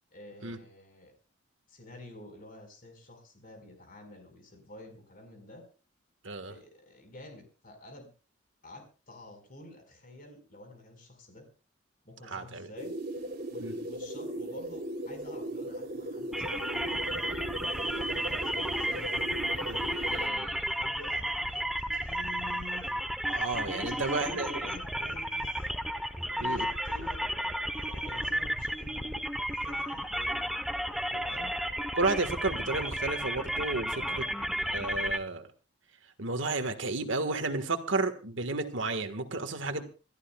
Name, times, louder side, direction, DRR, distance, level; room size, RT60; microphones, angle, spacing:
voice 1, 0.1-1.1 1.7-5.6 6.5-8.1 8.6-11.5 12.0-12.9 13.5-19.1 20.1-22.9 23.5-25.7 26.2-30.5 31.3-31.6 33.9-34.4 39.6-39.8, left 1 dB, 45° left, 5 dB, 4.9 m, -49 dB
voice 2, 12.3-12.7 13.6-13.7 19.7-19.8 23.3-24.6 26.4-26.6 31.1-31.2 31.9-33.9 34.7-35.5 36.2-39.8, right 3 dB, 70° right, 8 dB, 1.6 m, -32 dB
sound 1, 12.8-20.3, right 1 dB, 45° right, 3.0 m, -37 dB
sound 2, 16.3-35.2, equal, ahead, 0.9 m, -33 dB
27.0 x 14.0 x 2.3 m, 0.35 s
head